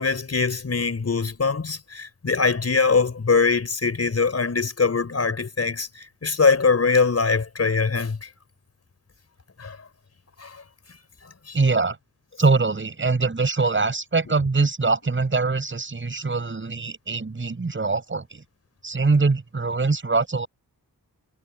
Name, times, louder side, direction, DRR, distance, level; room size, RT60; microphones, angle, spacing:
voice 1, 0.0-8.3 9.6-9.8 10.4-10.6 11.5-11.6, left 4 dB, 45° left, 5.0 m, -22 dB
voice 2, 11.5-12.0 12.4-18.4 18.8-20.5, right 3 dB, 35° right, 8.0 m, -23 dB
wide cardioid pair, 170°, 35 cm